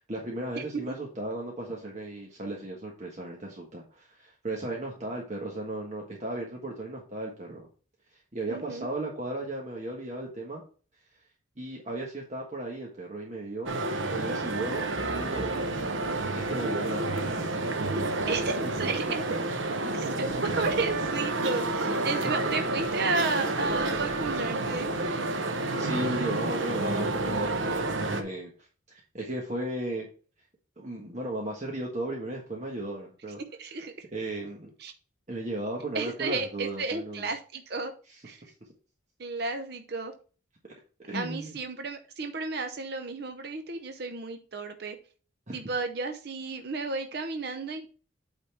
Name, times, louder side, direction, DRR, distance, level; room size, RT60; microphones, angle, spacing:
voice 1, 0.1-7.7 8.1-10.6 11.6-13.8 14.1-15.7 16.1-17.3 18.6-19.2 19.8-20.4 22.2-22.4 25.8-30.1 30.8-33.4 34.1-34.7 35.3-37.3 38.1-38.4 41.0-41.5 45.5-45.6, right 1 dB, 35° right, -2 dB, 1.4 m, -36 dB
voice 2, 8.5-8.9 18.3-19.2 19.9-24.9 33.6-33.9 34.8-34.9 35.9-37.9 38.2-38.4 39.2-40.1 41.1-45.0 45.5-47.9, right 3 dB, 55° right, 6 dB, 0.7 m, -33 dB
sound 1, 13.7-28.2, right 2 dB, 75° right, 1.0 m, -29 dB
8.6 x 4.0 x 4.5 m, 0.39 s
head